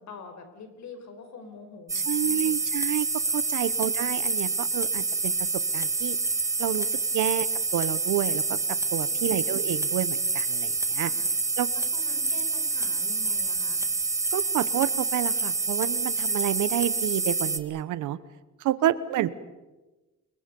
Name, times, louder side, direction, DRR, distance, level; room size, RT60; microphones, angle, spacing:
voice 1, 0.0-2.6 3.5-3.7 4.7-4.8 7.2-7.3 9.1-9.4 11.0-11.3 11.7-13.8 18.7-19.2, left 3 dB, 65° left, 7 dB, 4.8 m, -46 dB
sound 1, 1.9-17.6, right 3 dB, 10° right, 1.9 m, -27 dB
voice 2, 1.9-3.1 3.3-5.5 5.7-6.2 6.6-7.5 7.7-11.1 11.6-11.7 14.3-18.2 18.6-19.3, right 13 dB, 85° right, 16 dB, 1.1 m, -29 dB
29.5 x 22.5 x 5.4 m, 1.1 s
cardioid pair, 90°, 30 cm